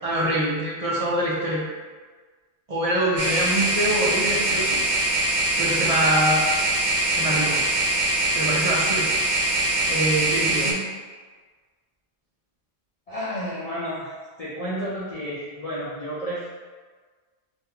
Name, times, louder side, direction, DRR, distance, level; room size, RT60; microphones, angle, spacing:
voice 1, 0.0-1.6 2.7-4.8 5.6-6.5 7.1-7.6 8.3-9.1 9.9-10.7, right 1 dB, 45° right, -5 dB, 0.5 m, -24 dB
sound 1, 3.2-10.7, right 2 dB, 80° right, 0.9 m, -23 dB
voice 2, 13.1-14.1 14.4-16.5, equal, 45° left, -10 dB, 0.6 m, -31 dB
3.5 x 2.5 x 2.8 m, 1.4 s
omnidirectional pair, 1.1 m